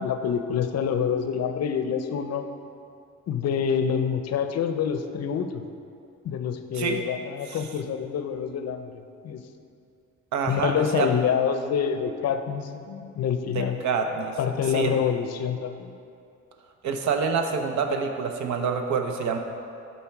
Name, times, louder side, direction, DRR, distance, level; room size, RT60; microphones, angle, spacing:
voice 1, 0.0-2.5 3.3-5.6 6.2-8.9 9.2-9.4 10.5-13.8 14.4-15.9, left 7 dB, 55° left, 8 dB, 0.6 m, -26 dB
voice 2, 10.3-11.1 13.5-14.4 14.7-14.9 16.8-19.4, right 5 dB, 70° right, 5 dB, 0.8 m, -27 dB
8.8 x 4.4 x 4.6 m, 2.5 s
cardioid pair, 90°, 30 cm